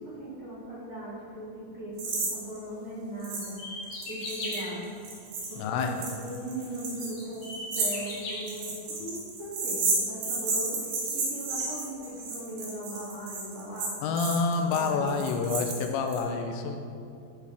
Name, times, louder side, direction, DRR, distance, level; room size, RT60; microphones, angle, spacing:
voice 1, 0.0-5.0 5.5-7.5 7.7-8.7 9.0-14.1 14.7-15.2, right 1 dB, 85° right, -12 dB, 0.8 m, -39 dB
sound 1, 2.0-2.3 2.6-2.7 3.2-3.5 3.8-16.2, right 3 dB, 65° right, 2.3 m, -32 dB
sound 2, 3.4-4.7 6.3-6.4 7.0-8.4, left 2 dB, 60° left, 2.3 m, -37 dB
voice 2, 5.6-5.9 14.0-16.8, left 4 dB, 85° left, 4 dB, 2.6 m, -28 dB
13.0 x 4.8 x 3.4 m, 2.4 s
omnidirectional pair, 5.6 m